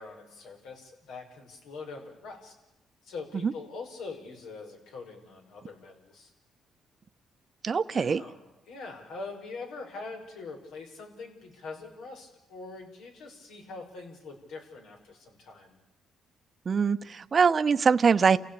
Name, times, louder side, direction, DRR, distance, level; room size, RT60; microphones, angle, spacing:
voice 1, 0.0-2.6 3.0-6.3 7.9-15.8, left 3 dB, 85° left, 3 dB, 5.7 m, -43 dB
voice 2, 7.6-8.2 16.7-18.4, right 5 dB, 40° right, 12 dB, 0.9 m, -23 dB
29.0 x 16.0 x 8.5 m, 1.0 s
cardioid pair, 90°, 0 cm